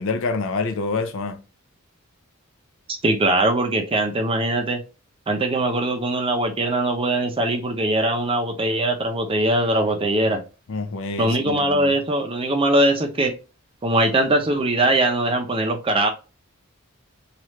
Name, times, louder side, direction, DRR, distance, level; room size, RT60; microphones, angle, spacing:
voice 1, 0.0-1.4 10.7-11.9, left 3 dB, 65° left, 0.5 m, -27 dB
voice 2, 2.9-4.8 5.3-10.4 11.2-13.3 13.8-16.1, right 1 dB, 25° right, 0.5 m, -21 dB
3.1 x 2.4 x 3.0 m
head